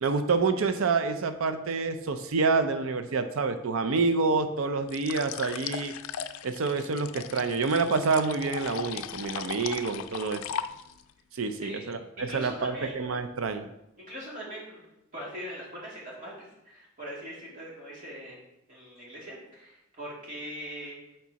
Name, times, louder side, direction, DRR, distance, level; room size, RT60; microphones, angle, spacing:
voice 1, 0.0-5.9 6.4-10.4 11.3-13.7, right 4 dB, 80° right, 9 dB, 0.5 m, -27 dB
sound 1, 4.9-11.1, left 8 dB, 85° left, 0.4 m, -38 dB
voice 2, 12.3-13.1 14.0-14.8 15.1-18.4 18.7-21.0, equal, 40° right, -5 dB, 2.3 m, -41 dB
7.4 x 4.6 x 4.0 m, 0.85 s
head